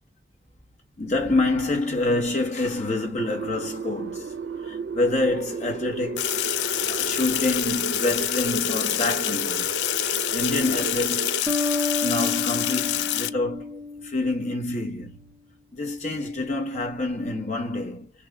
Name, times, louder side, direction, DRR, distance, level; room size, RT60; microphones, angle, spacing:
voice 1, 1.0-9.7 10.0-15.2 15.7-18.1, left 2 dB, 40° left, 1.2 m, -27 dB
sound 1, 3.2-11.4, right 5 dB, 85° right, 0.4 m, -33 dB
Sink (filling or washing), 6.2-13.3, left 13 dB, 80° left, 0.3 m, -27 dB
sound 2, 11.5-14.8, left 2 dB, 5° left, 0.7 m, -30 dB
3.3 x 2.1 x 3.4 m
head